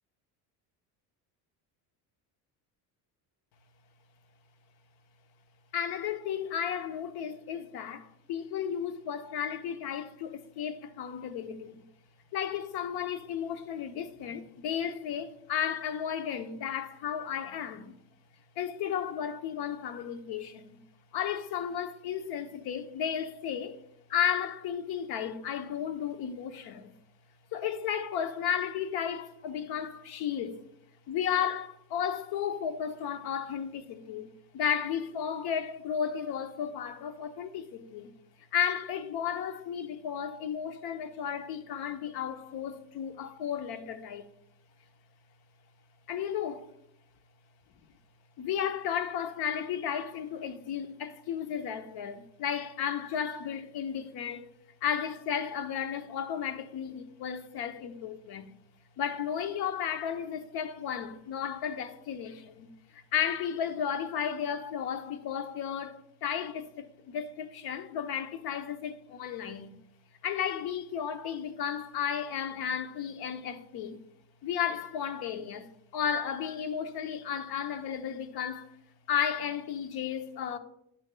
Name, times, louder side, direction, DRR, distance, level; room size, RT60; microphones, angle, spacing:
voice 1, 5.7-11.8 12.3-17.9 18.6-20.8 21.1-23.8 24.1-26.9 27.5-30.6 31.1-38.1 38.5-44.2 46.1-46.7 48.4-54.5 54.8-58.5 59.0-69.7 70.2-74.0 74.4-78.7 79.1-80.6, left 8 dB, 60° left, 0.8 m, -33 dB
9.7 x 6.3 x 2.2 m
cardioid pair, 115°, 42 cm